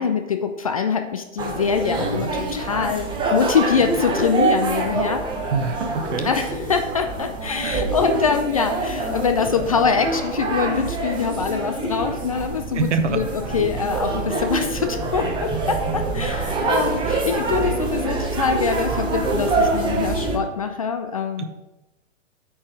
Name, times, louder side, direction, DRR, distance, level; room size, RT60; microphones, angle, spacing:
voice 1, 0.0-5.2 6.2-21.4, left 6 dB, 30° left, 7 dB, 0.3 m, -24 dB
sound 1, 1.4-20.4, right 3 dB, 10° right, 0.9 m, -25 dB
voice 2, 5.5-6.3 7.6-7.8 12.7-13.2 16.2-16.3 21.4-21.5, right 5 dB, 65° right, 9 dB, 1.0 m, -25 dB
8.6 x 4.7 x 4.8 m, 1.0 s
figure-of-eight pair, 120°, 39 cm